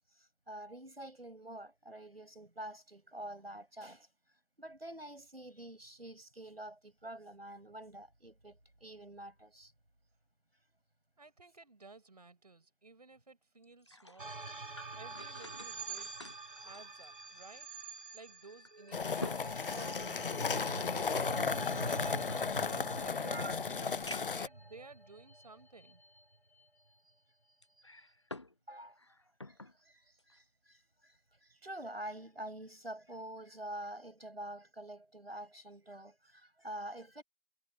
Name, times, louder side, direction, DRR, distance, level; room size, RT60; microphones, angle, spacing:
voice 1, 0.5-4.1 4.6-9.7 23.2-23.6 24.1-24.2 28.7-29.0 29.4-37.2, right 1 dB, 90° right, 6.2 m, -47 dB
voice 2, 11.2-14.4 14.9-16.2 16.6-17.7 18.1-21.0 21.8-26.0, right 3 dB, 45° right, 4.9 m, -55 dB
sound 1, 13.6-17.6 18.0-18.1 18.6-20.6 21.5-22.9 23.5-23.6 24.1-24.5 25.2-25.3 27.6-28.6 28.9-29.8 30.2-30.4, left 2 dB, 30° left, 0.9 m, -49 dB
sound 2, 14.2-26.6, right 3 dB, 60° right, 2.1 m, -45 dB
sound 3, 18.9-24.5, left 5 dB, 65° left, 0.5 m, -35 dB
figure-of-eight pair, 165°, 29 cm